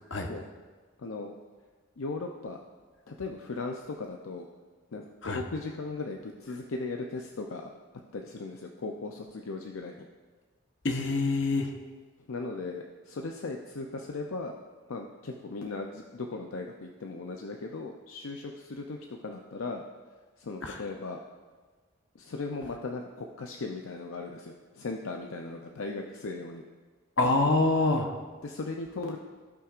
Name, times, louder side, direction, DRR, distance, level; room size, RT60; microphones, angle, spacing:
voice 1, 1.0-1.3 2.0-2.6 3.1-4.5 4.9-7.7 8.1-10.1 12.3-14.6 14.9-19.8 20.4-21.2 22.2-26.6 28.4-29.2, left 3 dB, 70° left, 2 dB, 0.5 m, -37 dB
voice 2, 10.8-11.7 20.6-20.8 27.2-28.2, left 2 dB, 55° left, 4 dB, 0.9 m, -25 dB
16.0 x 5.7 x 2.5 m, 1.4 s
head